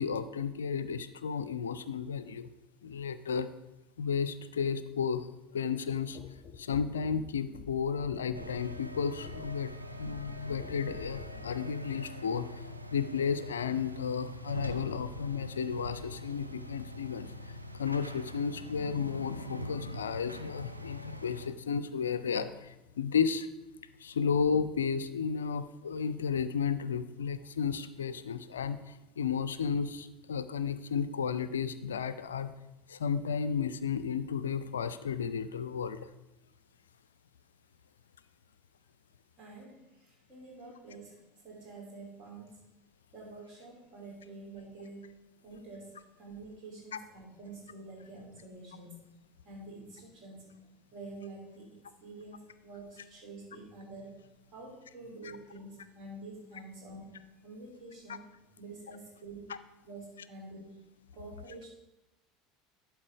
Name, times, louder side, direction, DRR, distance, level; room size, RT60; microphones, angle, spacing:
voice 1, 0.0-2.5 2.8-3.5 4.0-5.3 5.5-6.2 6.6-9.7 10.0-12.6 12.9-23.5 24.0-32.5 32.9-36.1 46.9-47.0 55.2-55.3, left 6 dB, 75° left, 14 dB, 0.4 m, -33 dB
sound 1, 6.1-11.7 12.6-12.7, left 6 dB, 35° left, 0.6 m, -49 dB
sound 2, 8.3-21.5, equal, 90° right, 0.4 m, -43 dB
voice 2, 39.4-42.6 43.1-45.1 45.4-49.0 49.4-54.2 54.5-58.2 58.6-59.4 59.8-60.8 61.1-61.7, right 2 dB, 40° right, -2 dB, 3.1 m, -48 dB
11.0 x 4.5 x 4.8 m, 0.96 s
figure-of-eight pair, 70°, 0 cm